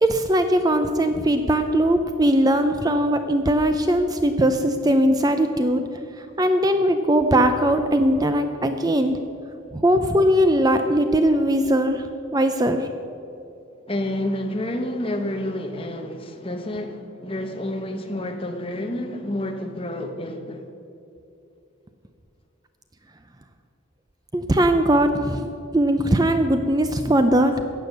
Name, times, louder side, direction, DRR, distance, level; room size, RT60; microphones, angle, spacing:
voice 1, 0.0-5.8 6.2-9.2 9.7-12.0 12.3-12.9 24.3-25.5 25.7-27.5, right 1 dB, 20° right, 0.5 m, -20 dB
voice 2, 13.9-20.7, left 1 dB, 25° left, 1.0 m, -29 dB
14.5 x 8.9 x 6.6 m
head